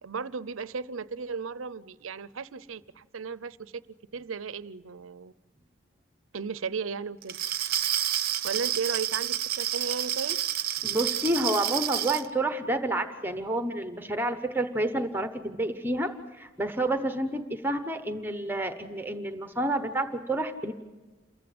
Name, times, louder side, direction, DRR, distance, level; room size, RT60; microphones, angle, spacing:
voice 1, 0.0-3.8 4.1-5.3 6.3-7.4 8.4-10.4, right 5 dB, 90° right, 0.6 m, -35 dB
Glass, 7.2-12.3, right 11 dB, 50° right, 0.7 m, -29 dB
voice 2, 10.8-20.7, right 1 dB, 10° right, 0.9 m, -29 dB
28.5 x 14.5 x 7.8 m
head